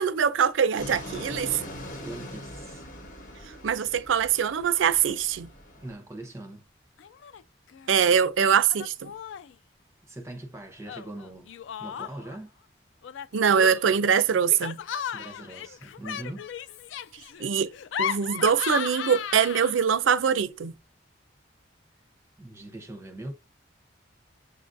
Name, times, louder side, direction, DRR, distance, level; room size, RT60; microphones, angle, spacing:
voice 1, 0.0-1.6 3.6-5.5 7.9-9.1 13.3-14.8 17.4-17.7 18.0-20.7, right 7 dB, 85° right, 0.4 m, -23 dB
Fixed-wing aircraft airplane, 0.8-5.9, equal, 45° left, 1.1 m, -41 dB
voice 2, 2.0-2.9 5.8-6.6 10.1-11.5 11.8-12.5 15.1-16.5 17.1-17.4 22.4-23.3, right 1 dB, 15° right, 0.6 m, -41 dB
Laughter, 7.0-7.4 7.7-8.3 8.7-9.5 10.8-12.4 13.0-20.0, left 9 dB, 80° left, 0.3 m, -36 dB
6.7 x 2.4 x 2.6 m
head